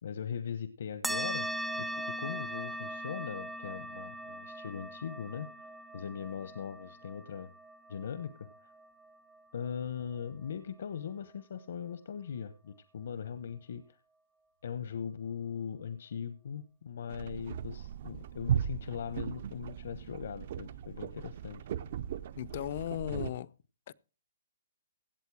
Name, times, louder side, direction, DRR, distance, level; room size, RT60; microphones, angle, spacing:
voice 1, 0.0-1.5 1.8-5.5 5.9-7.5 7.9-8.7 9.5-14.0 14.6-21.7 23.1-23.2, left 7 dB, 65° left, 1.0 m, -40 dB
sound 1, 1.0-10.0, right 1 dB, ahead, 0.5 m, -40 dB
sound 2, 17.1-23.3, right 9 dB, 50° right, 0.7 m, -37 dB
voice 2, 22.4-23.5 23.9-24.0, left 12 dB, 45° left, 0.6 m, -36 dB
16.5 x 8.1 x 4.8 m
hypercardioid pair, 160°, 0 cm